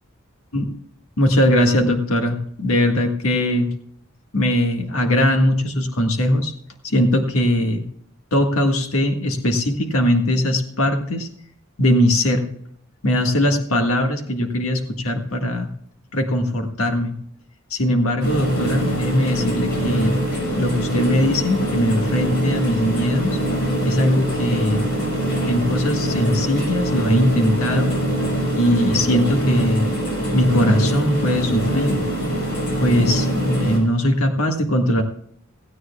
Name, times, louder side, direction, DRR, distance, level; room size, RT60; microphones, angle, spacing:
voice 1, 1.2-3.7 4.3-6.5 6.8-7.8 8.3-11.3 11.8-12.5 13.0-15.7 16.1-17.1 17.7-20.2 20.6-23.4 23.8-24.8 25.4-27.9 28.6-29.9 30.3-32.0 32.8-35.0, left 1 dB, 75° left, 4 dB, 1.7 m, -20 dB
sound 1, 18.2-33.8, right 1 dB, 55° left, 5.8 m, -23 dB
17.0 x 15.5 x 2.3 m, 0.68 s
head